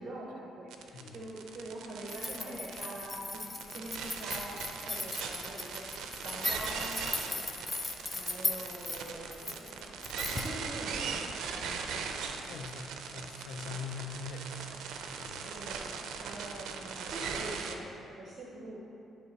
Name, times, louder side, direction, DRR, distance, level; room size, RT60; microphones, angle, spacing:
voice 1, 0.0-11.8 15.4-18.8, right 1 dB, 50° right, -3 dB, 0.8 m, -45 dB
sound 1, 0.7-17.7, right 6 dB, 80° right, 0.4 m, -39 dB
sound 2, 2.1-10.6, left 3 dB, 25° left, 0.5 m, -38 dB
voice 2, 12.4-14.5 15.2-15.4, left 4 dB, 85° left, 4 dB, 0.5 m, -42 dB
9.5 x 3.2 x 4.0 m, 2.7 s
cardioid pair, 90°, 0 cm